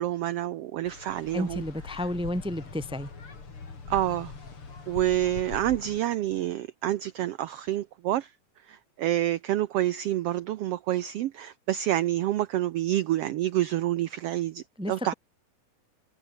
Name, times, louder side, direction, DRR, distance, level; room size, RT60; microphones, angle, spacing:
voice 1, 0.0-1.6 3.9-4.3 4.9-8.3 8.7-15.1, right 13 dB, 75° right, 1.4 m, -28 dB
sound 1, 0.8-6.0, left 4 dB, 45° left, 4.7 m, -42 dB
voice 2, 1.3-3.1 14.8-14.9, left 1 dB, 5° right, 0.3 m, -31 dB
omnidirectional pair, 3.6 m